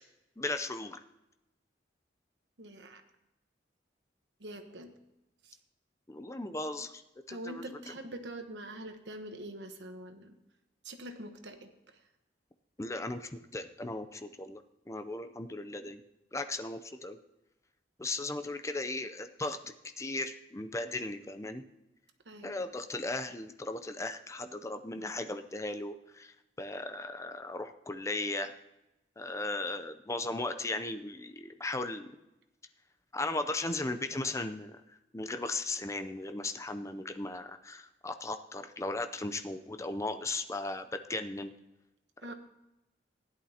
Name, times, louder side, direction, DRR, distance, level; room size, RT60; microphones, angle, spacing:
voice 1, 0.4-1.0 6.1-7.0 7.3-7.6 12.8-16.0 16.3-17.2 18.0-21.6 22.4-26.3 26.6-28.5 29.2-32.1 33.1-41.5, left 2 dB, 15° left, 8 dB, 0.5 m, -37 dB
voice 2, 2.6-3.0 4.4-4.9 5.4-5.5 7.3-10.3 10.8-11.7 22.2-22.6 29.4-29.6 42.2-42.3, right 1 dB, 70° right, 7 dB, 1.2 m, -44 dB
16.0 x 11.0 x 2.8 m, 0.93 s
head